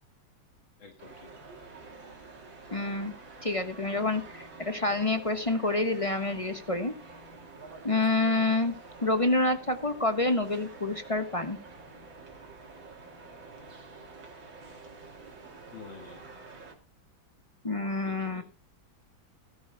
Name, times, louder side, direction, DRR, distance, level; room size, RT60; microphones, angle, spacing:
voice 1, 0.8-1.3 8.2-8.5 15.7-16.2 18.0-18.4, left 6 dB, 75° left, 3 dB, 2.8 m, -49 dB
sound 1, 1.0-16.8, right 3 dB, 75° right, 3.5 m, -48 dB
voice 2, 2.7-3.1 3.4-6.9 7.8-8.8 9.0-11.6 17.6-18.4, left 2 dB, 20° left, 8 dB, 1.0 m, -28 dB
19.0 x 13.0 x 2.2 m, 0.29 s
omnidirectional pair, 2.1 m